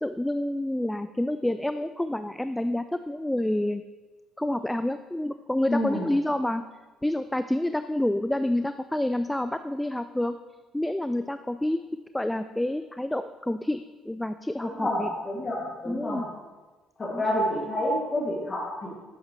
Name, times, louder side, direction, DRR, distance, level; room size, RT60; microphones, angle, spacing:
voice 1, 0.0-3.8 4.4-6.6 7.0-10.4 10.7-11.8 12.1-15.1 15.9-16.3 17.1-17.2, left 1 dB, 5° left, 10 dB, 0.3 m, -28 dB
voice 2, 5.7-6.0 14.6-16.2 17.0-18.9, left 1 dB, 35° left, -6 dB, 2.5 m, -28 dB
9.8 x 7.9 x 3.3 m, 1.3 s
hypercardioid pair, 60°, 0 cm